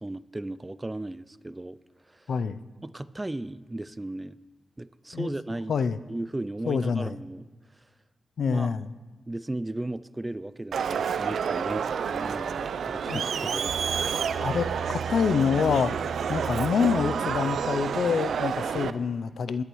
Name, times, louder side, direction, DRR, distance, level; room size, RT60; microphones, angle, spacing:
voice 1, 0.0-1.8 2.1-2.2 2.8-4.4 4.8-5.7 6.1-7.5 8.4-8.7 9.3-13.2 13.5-13.8, right 2 dB, 20° right, 15 dB, 0.3 m, -36 dB
voice 2, 2.3-2.6 5.1-5.3 5.7-6.0 6.7-7.2 8.4-8.9 13.1-13.2 14.4-15.9 16.3-19.6, left 6 dB, 75° left, 14 dB, 0.4 m, -26 dB
Crowd, 10.7-18.9, right 7 dB, 80° right, 0.4 m, -29 dB
21.0 x 11.0 x 3.1 m, 1.3 s
cardioid pair, 85°, 0 cm